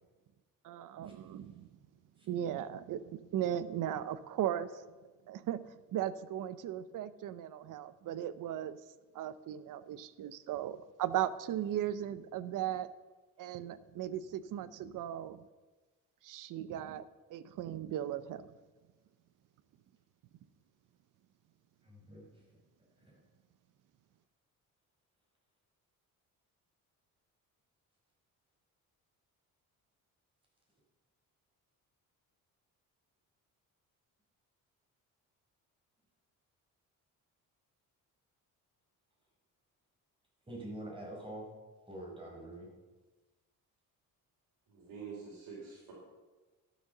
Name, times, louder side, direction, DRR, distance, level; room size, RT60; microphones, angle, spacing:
voice 1, 0.6-1.7 2.3-4.8 5.3-5.6 5.9-8.8 9.1-12.9 13.4-15.5 16.2-17.0 17.3-18.5, right 11 dB, 65° right, 15 dB, 0.7 m, -37 dB
voice 2, 21.8-22.4 23.0-23.2 40.4-41.5 41.9-42.7, right 1 dB, 15° right, -3 dB, 4.7 m, -46 dB
voice 3, 44.7-45.9, right 5 dB, 85° right, -4 dB, 3.7 m, -46 dB
12.0 x 7.5 x 6.6 m, 1.2 s
cardioid pair, 135°, 34 cm